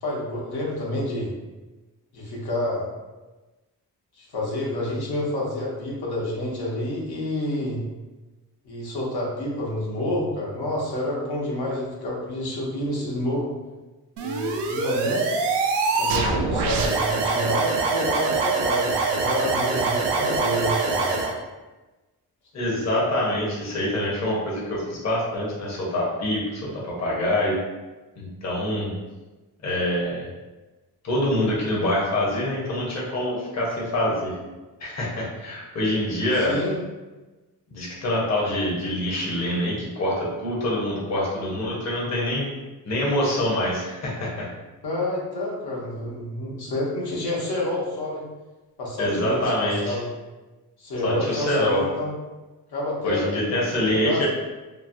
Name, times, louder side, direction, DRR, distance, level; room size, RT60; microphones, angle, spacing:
voice 1, 0.0-1.3 2.1-2.9 4.1-7.8 8.6-13.5 14.2-15.3 16.0-21.2 36.4-36.8 44.8-48.2 48.8-50.0 50.8-52.1 52.7-54.3, left 1 dB, 70° left, -4 dB, 1.0 m, -28 dB
sound 1, 14.2-21.3, right 4 dB, 85° right, 0.5 m, -24 dB
voice 2, 22.5-27.6 28.2-28.9 29.6-30.3 31.0-34.3 34.8-36.5 37.7-42.5 42.8-44.5 49.0-50.0 51.0-51.8 53.0-54.3, left 1 dB, 40° left, -4 dB, 0.9 m, -25 dB
3.1 x 2.0 x 2.6 m, 1.2 s
cardioid pair, 80°, 40 cm